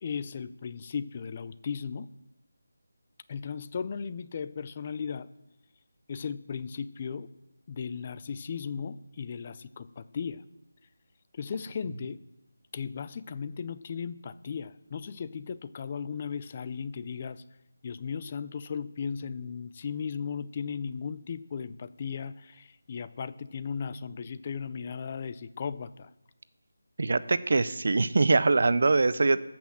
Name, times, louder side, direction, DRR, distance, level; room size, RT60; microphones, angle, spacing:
voice 1, 0.0-2.1 3.3-5.3 6.1-7.3 7.7-10.5 11.3-12.2 12.7-17.4 17.8-26.1, left 6 dB, 30° left, 15 dB, 0.4 m, -36 dB
voice 2, 27.0-29.4, right 3 dB, 55° right, 16 dB, 0.6 m, -23 dB
14.0 x 6.0 x 7.3 m, 0.92 s
figure-of-eight pair, 170°, 0 cm